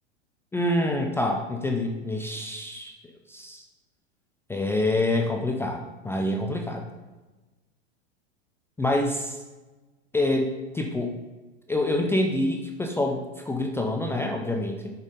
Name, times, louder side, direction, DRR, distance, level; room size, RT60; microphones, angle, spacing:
voice 1, 0.5-2.9 3.3-3.6 4.5-6.9 8.8-9.4 10.1-11.2 11.7-14.9, left 1 dB, 5° left, 2 dB, 0.4 m, -26 dB
5.4 x 4.0 x 5.2 m, 1.2 s
hypercardioid pair, 110°, 34 cm